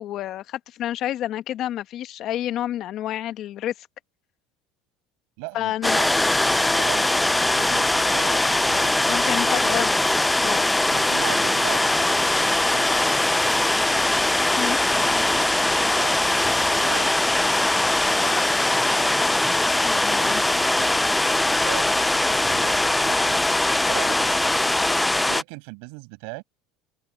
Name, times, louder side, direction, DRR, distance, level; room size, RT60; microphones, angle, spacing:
voice 1, 0.0-3.9 5.5-6.0 9.1-9.9 10.4-10.6 14.5-14.8 19.8-20.4, left 12 dB, 55° left, 1.4 m, -29 dB
voice 2, 5.4-10.2 10.9-14.3 14.8-17.1 18.1-18.8 20.0-24.7 25.3-26.4, right 37 dB, 75° right, 7.2 m, -39 dB
sound 1, 5.8-25.4, left 2 dB, 10° left, 0.4 m, -21 dB
open air
supercardioid pair, 110°, 0 cm